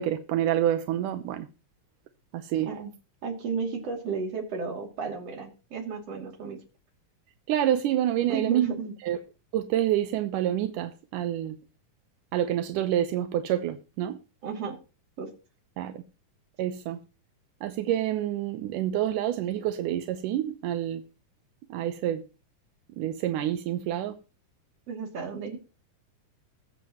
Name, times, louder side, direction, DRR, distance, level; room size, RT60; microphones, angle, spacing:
voice 1, 0.0-1.5 2.3-2.7 7.5-8.7 9.0-9.2 9.5-11.6 12.3-14.2 15.8-15.9 16.6-17.0 17.6-21.0 21.7-22.2 23.0-24.2, right 11 dB, 85° right, 2.4 m, -27 dB
voice 2, 3.2-6.6 8.3-8.9 14.4-14.8 15.2-15.3 24.9-25.6, right 5 dB, 50° right, 3.6 m, -33 dB
22.0 x 7.4 x 3.0 m
omnidirectional pair, 3.7 m